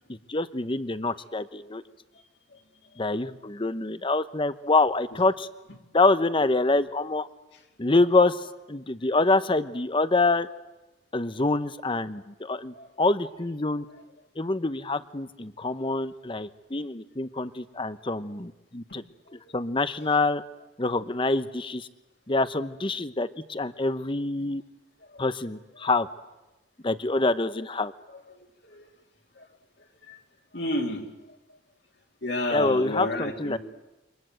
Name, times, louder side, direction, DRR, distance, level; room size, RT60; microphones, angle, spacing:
voice 1, 0.1-1.8 3.0-5.5 5.9-7.3 7.8-10.5 11.1-13.8 14.4-19.0 19.3-20.4 20.8-21.9 22.3-24.6 25.2-26.1 26.8-27.9 32.5-33.6, left 2 dB, 30° left, 13 dB, 1.0 m, -26 dB
voice 2, 28.3-28.8 29.4-29.5 30.1-30.2 30.5-31.1 32.2-33.6, left 1 dB, 65° left, 2 dB, 3.3 m, -31 dB
28.0 x 24.5 x 7.8 m, 1.0 s
head